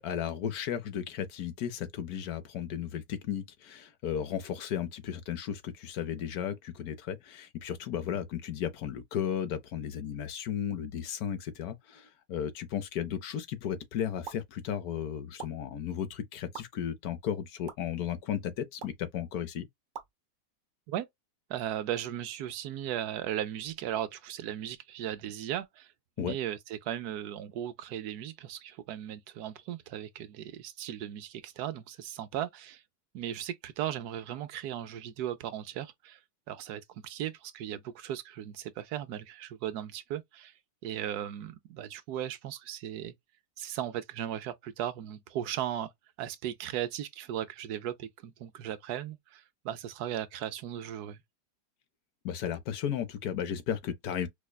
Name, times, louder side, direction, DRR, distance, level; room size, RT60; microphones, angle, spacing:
voice 1, 0.0-19.7 26.2-26.4 52.2-54.3, left 9 dB, 70° left, 1.2 m, -34 dB
sound 1, 14.3-14.4 15.4-15.5 16.5-16.6 17.7-17.8 18.8-19.0 19.9-20.1, right 6 dB, 50° right, 0.6 m, -41 dB
voice 2, 21.5-25.9 26.2-32.8 33.1-36.2 36.5-40.5 40.8-43.1 43.6-45.9 46.2-51.2, right 11 dB, 75° right, 1.1 m, -37 dB
4.9 x 2.1 x 2.2 m
omnidirectional pair, 1.7 m